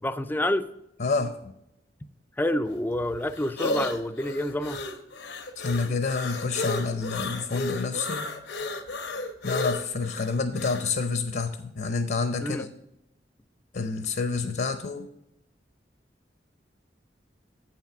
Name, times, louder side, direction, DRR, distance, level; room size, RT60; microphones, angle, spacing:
voice 1, 0.0-0.6 2.4-4.8 12.4-12.7, left 1 dB, 10° left, 12 dB, 0.4 m, -28 dB
voice 2, 1.0-1.5 5.6-8.3 9.4-12.7 13.7-15.1, left 4 dB, 60° left, 9 dB, 0.7 m, -28 dB
sound 1, 2.7-10.9, left 2 dB, 90° left, 1.0 m, -33 dB
8.1 x 5.9 x 5.9 m, 0.84 s
head